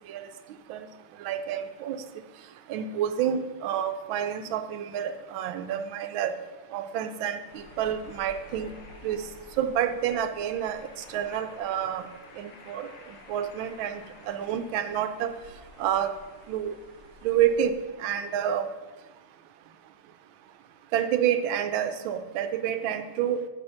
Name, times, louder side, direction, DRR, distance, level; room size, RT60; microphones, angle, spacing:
voice 1, 1.2-2.0 2.7-6.3 6.7-8.7 9.0-9.2 9.6-10.8 11.1-12.0 12.4-12.9 13.3-15.3 15.8-16.1 16.5-16.7 17.2-18.7 20.9-23.4, right 9 dB, 80° right, 9 dB, 1.4 m, -28 dB
sound 1, 7.5-17.7, left 3 dB, 65° left, 1.6 m, -51 dB
8.7 x 5.1 x 5.6 m, 1.2 s
omnidirectional pair, 2.2 m